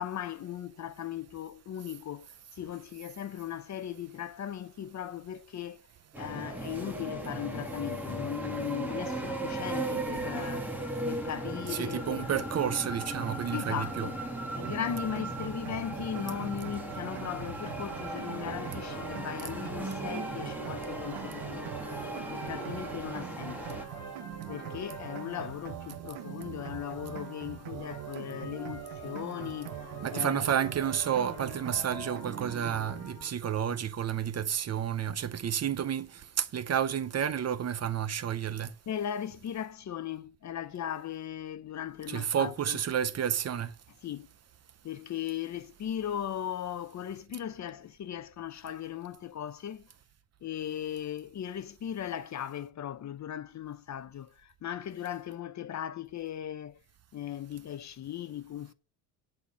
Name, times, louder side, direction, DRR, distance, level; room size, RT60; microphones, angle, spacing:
voice 1, 0.0-2.3 2.5-5.8 6.2-10.7 11.0-12.4 13.5-14.2 14.5-21.7 22.3-23.8 24.5-29.7 30.1-30.4 38.9-42.8 44.0-44.3 44.8-49.8 50.4-56.8 57.1-58.7, left 10 dB, 40° left, 0.7 m, -38 dB
sound 1, 6.1-23.8, right 1 dB, 5° right, 2.2 m, -37 dB
voice 2, 11.7-14.1 30.0-38.7 42.1-43.7, right 9 dB, 35° right, 0.7 m, -31 dB
sound 2, 14.6-32.8, right 13 dB, 70° right, 1.1 m, -42 dB
sound 3, 17.6-33.3, left 1 dB, 10° left, 6.0 m, -47 dB
9.9 x 4.3 x 7.3 m
cardioid pair, 110°, 45 cm